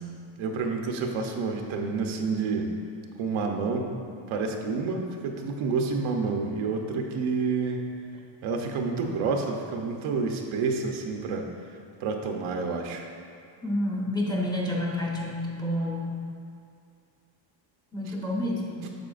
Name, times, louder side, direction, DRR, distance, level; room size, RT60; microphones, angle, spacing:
voice 1, 0.4-2.7 3.2-3.9 4.3-7.8 8.4-11.5 12.0-13.1 18.1-18.2, right 4 dB, 80° right, 2 dB, 0.9 m, -29 dB
voice 2, 13.6-16.2 17.9-18.9, left 1 dB, 10° left, -3 dB, 0.9 m, -29 dB
9.0 x 6.6 x 2.5 m, 2.4 s
cardioid pair, 130°, 47 cm